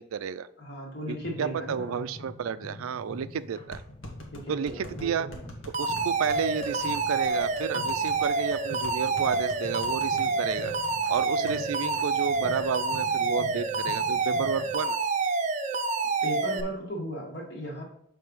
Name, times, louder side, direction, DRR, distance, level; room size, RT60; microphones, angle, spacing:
voice 1, 0.0-0.5 1.1-3.8 4.5-5.3 5.8-10.7 11.1-15.0, right 7 dB, 85° right, 15 dB, 0.4 m, -32 dB
voice 2, 0.6-2.1 4.3-5.4 11.4-11.5 16.2-17.8, equal, 50° left, 0 dB, 1.8 m, -37 dB
sound 1, 1.2-14.7, left 1 dB, 20° left, 0.9 m, -44 dB
sound 2, 2.8-2.9 3.7-11.6 11.9-12.0 12.3-12.7, left 1 dB, 75° left, 1.3 m, -46 dB
Alarm, 5.7-16.6, right 4 dB, 35° right, 0.5 m, -28 dB
6.7 x 3.3 x 5.4 m, 0.69 s
head